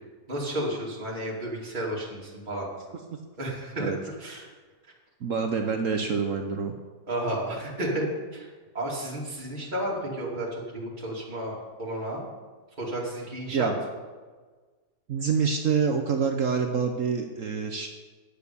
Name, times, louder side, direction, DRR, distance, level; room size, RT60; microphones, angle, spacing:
voice 1, 0.3-2.7 3.4-4.5 7.1-12.2 12.8-13.7, right 1 dB, 25° right, -5 dB, 2.7 m, -32 dB
voice 2, 5.2-6.7 13.5-13.8 15.1-17.9, right 6 dB, 55° right, 4 dB, 1.1 m, -26 dB
10.0 x 8.3 x 7.0 m, 1.4 s
omnidirectional pair, 1.8 m